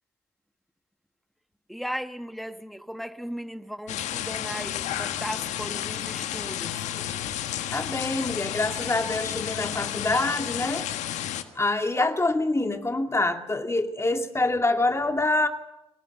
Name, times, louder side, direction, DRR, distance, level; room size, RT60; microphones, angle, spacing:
voice 1, 1.7-6.8, equal, ahead, 1.5 m, -36 dB
sound 1, 3.9-11.4, left 11 dB, 65° left, 1.4 m, -32 dB
voice 2, 7.0-7.3 7.7-10.9 11.6-15.5, left 2 dB, 20° left, 2.2 m, -26 dB
24.0 x 18.5 x 6.8 m
hypercardioid pair, 45°, 13 cm